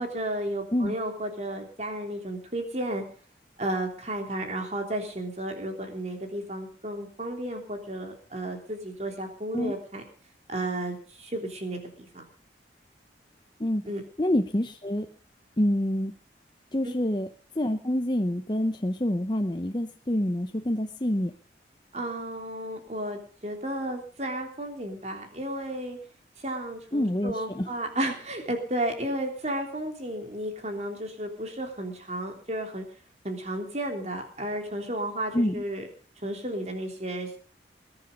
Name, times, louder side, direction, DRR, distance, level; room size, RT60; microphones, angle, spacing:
voice 1, 0.0-3.0 3.6-10.0 10.5-12.2 13.9-14.0 16.8-16.9 21.9-26.0 26.4-32.8 33.2-35.9 36.2-37.4, right 1 dB, 35° right, 3 dB, 3.4 m, -33 dB
voice 2, 14.2-15.1 15.6-16.1 16.7-17.3 17.6-21.3 26.9-27.7 35.3-35.6, left 1 dB, 25° left, 5 dB, 0.8 m, -27 dB
21.0 x 10.5 x 5.3 m, 0.42 s
head